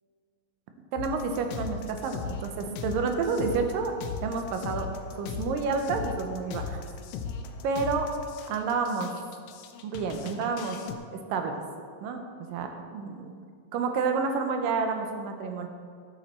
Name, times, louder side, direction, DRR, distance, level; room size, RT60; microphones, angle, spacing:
voice 1, 0.9-4.9 5.2-6.8 7.6-8.1 8.5-9.1 9.8-10.8 11.1-11.6 12.0-13.4 13.7-15.7, right 4 dB, 80° right, 5 dB, 2.4 m, -29 dB
sound 1, 1.0-11.0, left 5 dB, 85° left, 1.6 m, -38 dB
12.5 x 7.2 x 4.3 m, 2.1 s
omnidirectional pair, 4.0 m